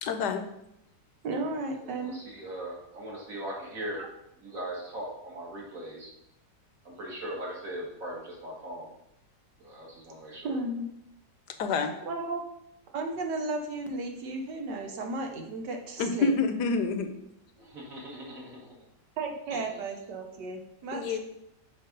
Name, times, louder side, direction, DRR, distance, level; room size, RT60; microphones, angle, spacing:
voice 1, 0.0-0.4 11.6-11.9 16.0-17.1 20.9-21.2, left 4 dB, 75° left, 7 dB, 1.3 m, -27 dB
voice 2, 1.2-2.2 4.0-4.1 10.4-10.9 12.0-12.4 12.9-16.3 19.2-21.2, right 2 dB, 75° right, 3 dB, 1.6 m, -34 dB
voice 3, 1.8-4.0 4.4-6.1 6.8-8.9 9.6-10.6 17.6-18.7 19.5-19.6, right 1 dB, 50° right, -3 dB, 2.3 m, -39 dB
6.6 x 4.4 x 5.3 m, 0.80 s
omnidirectional pair, 1.9 m